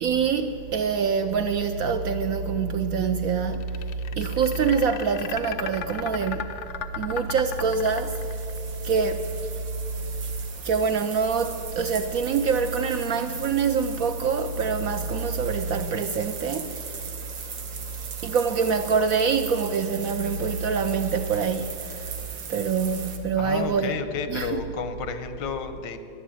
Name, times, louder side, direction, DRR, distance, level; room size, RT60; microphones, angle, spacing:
voice 1, 0.0-3.8 4.1-6.5 7.0-8.4 8.8-9.3 10.6-17.1 18.2-22.2 22.5-23.9 24.3-24.7, right 5 dB, 70° right, 0.8 m, -25 dB
sound 1, 3.5-8.6, left 8 dB, 70° left, 0.7 m, -35 dB
sound 2, 7.5-23.2, right 6 dB, 85° right, 1.9 m, -39 dB
voice 2, 23.4-26.0, left 6 dB, 85° left, 1.6 m, -31 dB
11.0 x 11.0 x 8.9 m
omnidirectional pair, 1.9 m